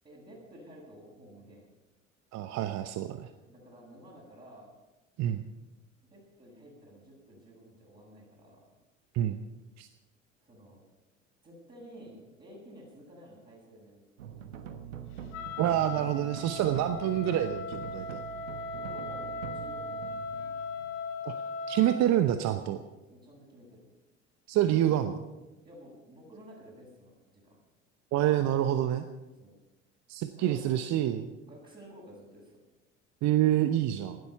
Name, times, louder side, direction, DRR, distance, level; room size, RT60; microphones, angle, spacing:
voice 1, 0.0-1.7 3.5-4.7 6.0-8.7 10.4-10.9 11.4-14.8 18.8-20.5 23.1-23.9 24.5-25.1 25.6-27.6 29.4-29.6 30.3-30.8 31.4-32.6, equal, 25° right, -6 dB, 7.3 m, -52 dB
voice 2, 2.3-3.3 5.2-5.4 9.1-9.4 9.8-9.9 15.6-18.2 21.2-21.4 21.7-22.8 24.5-25.1 28.1-29.0 30.1-31.2 33.2-34.2, right 12 dB, 45° right, 9 dB, 1.0 m, -27 dB
sound 1, 14.2-21.4, right 7 dB, 75° right, 1.3 m, -44 dB
Wind instrument woodwind instrument, 15.3-22.1, left 3 dB, 65° left, 2.1 m, -38 dB
17.5 x 12.5 x 5.8 m, 1.1 s
figure-of-eight pair, 65°, 39 cm